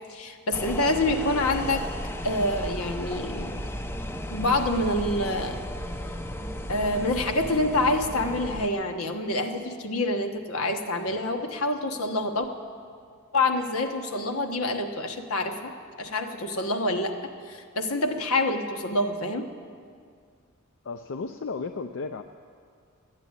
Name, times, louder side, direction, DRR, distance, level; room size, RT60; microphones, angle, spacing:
voice 1, 0.1-1.8 2.2-3.6 4.3-5.6 6.7-12.5 13.3-15.7 16.0-17.2 17.5-19.5, left 2 dB, 80° left, 5 dB, 1.2 m, -27 dB
sound 1, 0.5-8.7, equal, 10° left, 0.5 m, -34 dB
voice 2, 20.8-22.2, left 4 dB, 60° left, 8 dB, 0.4 m, -34 dB
12.5 x 8.9 x 9.5 m, 2.1 s
head